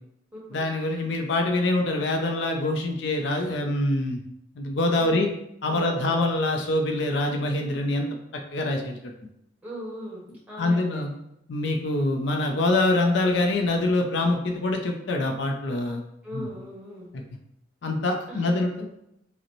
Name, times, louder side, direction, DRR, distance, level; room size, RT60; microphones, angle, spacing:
voice 1, 0.5-4.2 4.6-5.3 5.6-8.1 8.5-9.0 10.6-11.1 11.5-16.0 16.3-16.5 17.8-19.0, left 2 dB, 65° left, 3 dB, 0.4 m, -25 dB
voice 2, 5.7-6.3 9.6-11.0 16.2-17.1 18.3-18.6, equal, 5° right, -6 dB, 1.1 m, -39 dB
4.9 x 2.1 x 3.0 m, 0.79 s
head